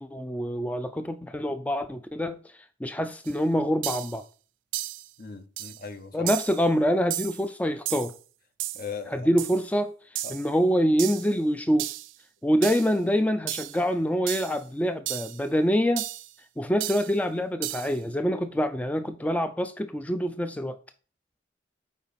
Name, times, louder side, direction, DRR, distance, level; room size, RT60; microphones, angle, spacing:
voice 1, 0.0-4.2 6.1-8.1 9.1-11.9 12.4-16.1 16.6-20.8, equal, 10° left, 0.4 m, -26 dB
sound 1, 3.2-3.3 3.8-4.2 4.7-5.1 5.6-5.8 6.3-6.6 7.1-7.4 7.9-8.2 8.6-8.9 9.4-9.6 10.2-10.5 11.0-11.3 11.8-12.1 12.6-12.9 13.5-13.8 14.3-14.6 15.1-15.4 16.0-16.3 16.8-17.1 17.6-18.0, right 15 dB, 80° right, 0.4 m, -33 dB
voice 2, 5.2-6.3 8.7-9.3 10.2-10.4, left 5 dB, 55° left, 0.8 m, -39 dB
7.1 x 4.8 x 4.1 m
head